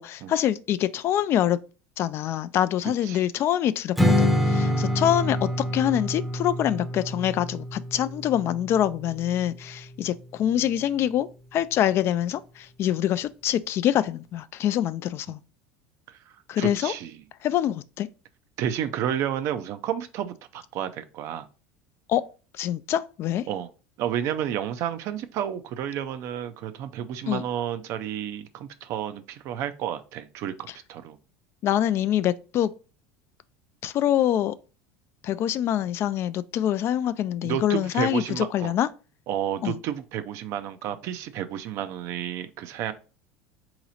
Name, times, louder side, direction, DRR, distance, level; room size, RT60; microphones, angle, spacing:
voice 1, 0.0-1.6 2.0-15.4 16.5-16.9 17.4-18.1 22.1-22.2 22.6-23.4 27.3-27.4 31.6-32.7 33.8-34.5 35.2-38.9 39.6-39.8, left 11 dB, 45° left, 0.3 m, -25 dB
voice 2, 2.8-3.3 4.7-4.8 15.3-15.4 16.6-17.2 18.6-21.5 23.5-23.7 24.0-31.2 37.4-38.7 39.3-42.9, right 10 dB, 60° right, 0.5 m, -31 dB
Strum, 4.0-9.2, left 1 dB, ahead, 0.7 m, -26 dB
4.0 x 3.0 x 3.9 m
supercardioid pair, 95°, 6 cm